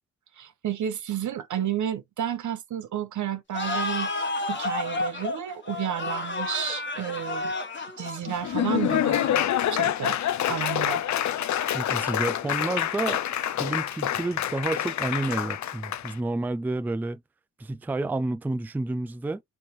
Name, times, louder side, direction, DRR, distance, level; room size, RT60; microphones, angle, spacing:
voice 1, 0.4-4.1 4.5-7.5 8.0-10.2 10.5-11.0, right 10 dB, 80° right, 0.8 m, -31 dB
sound 1, 3.5-10.0, left 2 dB, 40° left, 1.2 m, -32 dB
Laughter / Applause, 8.3-16.1, left 11 dB, 70° left, 0.5 m, -27 dB
voice 2, 11.7-13.2 13.6-17.2 17.6-19.4, right 2 dB, 5° right, 0.3 m, -30 dB
4.4 x 2.9 x 3.1 m
cardioid pair, 70°, 30 cm